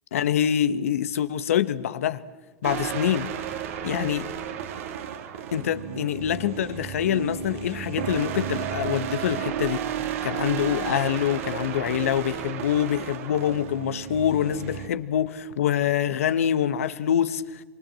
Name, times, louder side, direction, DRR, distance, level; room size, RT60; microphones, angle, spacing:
voice 1, 0.1-2.2 2.6-3.3 3.8-4.3 5.5-9.9 10.2-17.6, left 10 dB, 80° left, 1.4 m, -25 dB
sound 1, 2.6-14.9, right 9 dB, 70° right, 2.5 m, -33 dB
27.5 x 24.5 x 7.7 m
hypercardioid pair, 105°, 8 cm